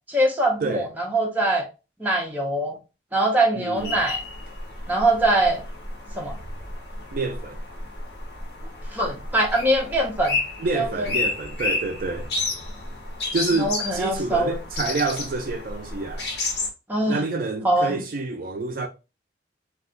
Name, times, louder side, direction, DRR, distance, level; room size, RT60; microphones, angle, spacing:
voice 1, 0.1-1.7 2.0-2.8 3.1-4.2 4.9-5.6 6.2-6.4 8.9-10.4 10.7-11.1 13.6-14.6 16.9-17.2 17.6-18.0, right 1 dB, 10° right, 0.6 m, -22 dB
voice 2, 3.5-4.0 7.1-7.6 10.6-12.3 13.3-16.3 17.1-18.9, right 3 dB, 50° right, 0.4 m, -28 dB
sound 1, 3.8-16.7, left 3 dB, 65° left, 0.8 m, -31 dB
2.3 x 2.3 x 3.7 m
head